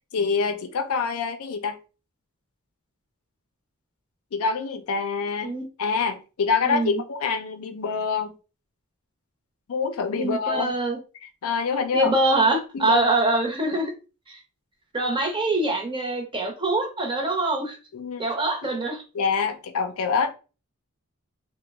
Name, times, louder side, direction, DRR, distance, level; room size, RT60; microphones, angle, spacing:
voice 1, 0.1-1.8 4.3-5.5 5.8-8.3 9.7-10.7 11.2-12.1 12.7-13.1 17.9-18.2 18.6-18.7 19.1-20.3, left 5 dB, 70° left, 0.4 m, -26 dB
voice 2, 6.6-7.0 10.1-11.0 11.9-13.9 14.3-14.4 14.9-17.8 18.2-19.0, right 2 dB, 20° right, 0.7 m, -24 dB
2.9 x 2.1 x 3.4 m
head